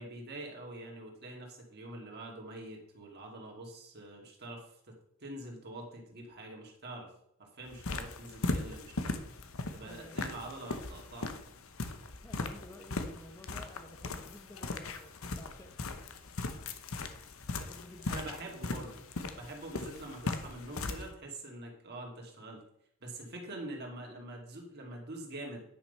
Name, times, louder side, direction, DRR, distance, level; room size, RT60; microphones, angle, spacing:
voice 1, 0.0-4.7 5.2-7.1 7.4-9.2 9.7-11.3 17.5-17.7 18.0-19.0 19.3-22.6 23.0-25.6, right 1 dB, 50° right, 0 dB, 2.5 m, -45 dB
sound 1, 7.7-21.1, left 3 dB, 70° left, 1.0 m, -39 dB
voice 2, 9.8-10.4 12.2-15.8 17.6-18.2, left 1 dB, 15° left, 4 dB, 1.0 m, -53 dB
10.0 x 6.0 x 5.5 m, 0.75 s
head